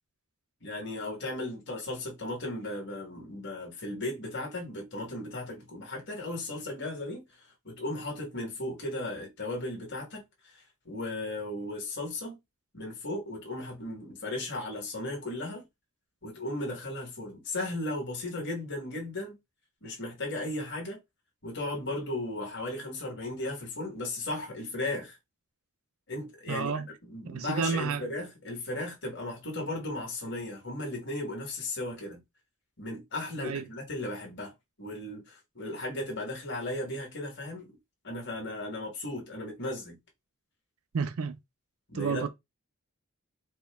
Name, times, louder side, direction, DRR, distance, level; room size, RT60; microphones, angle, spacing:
voice 1, 0.6-7.2 7.6-10.5 10.8-12.4 12.7-15.6 16.2-19.4 19.8-21.0 21.4-25.2 26.1-32.2 32.8-34.5 34.8-37.7 38.0-40.0 41.9-42.3, left 2 dB, 50° left, 1.5 m, -36 dB
voice 2, 26.5-26.9 27.3-28.1 33.4-33.7 40.9-41.4 41.9-42.3, right 5 dB, 75° right, 0.5 m, -30 dB
4.3 x 2.2 x 3.4 m
head